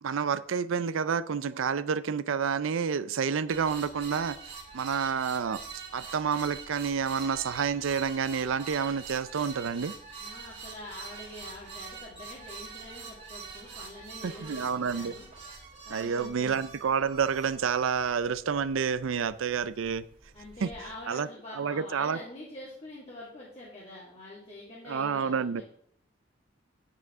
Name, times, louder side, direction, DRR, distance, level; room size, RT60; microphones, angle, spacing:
voice 1, 0.0-4.4 4.7-5.6 5.9-9.9 14.2-15.1 15.9-20.0 20.6-20.7 21.1-21.3 21.6-22.2 24.9-25.6, right 6 dB, 90° right, 15 dB, 0.5 m, -29 dB
sound 1, 3.5-21.1, right 5 dB, 35° right, 2.6 m, -45 dB
voice 2, 10.2-15.3 15.9-16.6 20.3-25.6, left 2 dB, 30° left, -6 dB, 1.9 m, -45 dB
9.3 x 8.3 x 3.6 m, 0.64 s
head